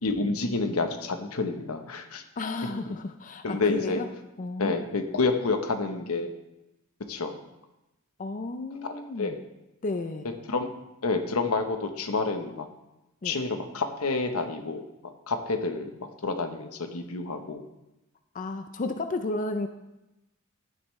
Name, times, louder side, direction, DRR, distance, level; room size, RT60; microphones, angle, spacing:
voice 1, 0.0-2.2 3.4-4.0 4.6-6.3 7.1-7.3 8.8-9.4 10.5-10.7 11.0-12.7 13.2-17.6, left 3 dB, 85° left, 6 dB, 1.0 m, -29 dB
voice 2, 2.4-4.1 4.4-4.7 8.2-9.4 9.8-10.3 13.2-13.4 18.3-19.7, left 2 dB, 40° left, 7 dB, 0.5 m, -32 dB
12.0 x 9.5 x 3.2 m, 0.94 s
head